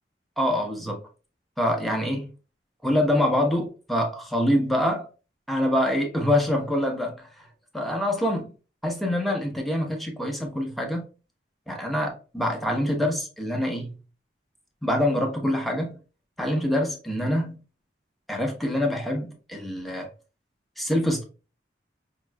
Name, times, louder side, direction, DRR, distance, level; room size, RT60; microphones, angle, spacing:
voice 1, 0.4-1.0 1.6-2.3 2.8-5.1 5.5-7.5 7.7-8.5 8.8-11.1 11.7-14.0 14.8-16.0 16.4-17.6 18.3-20.1 20.8-21.2, left 1 dB, ahead, 0.9 m, -25 dB
5.2 x 3.0 x 2.3 m
head